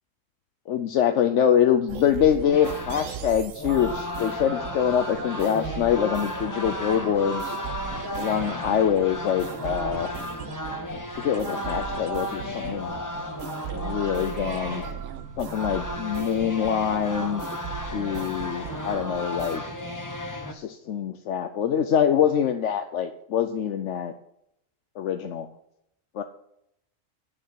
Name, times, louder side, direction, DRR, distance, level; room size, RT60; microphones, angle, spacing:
voice 1, 0.7-7.5 8.2-10.1 11.1-12.9 13.7-14.8 15.4-17.4 17.8-19.6 20.5-24.1 25.0-25.5 26.1-26.2, left 8 dB, 70° left, 8 dB, 1.0 m, -24 dB
sound 1, 1.9-19.6, right 9 dB, 80° right, 1.1 m, -38 dB
sound 2, 2.5-20.5, left 1 dB, 15° left, 0.9 m, -34 dB
8.9 x 7.2 x 7.0 m, 0.76 s
omnidirectional pair, 1.4 m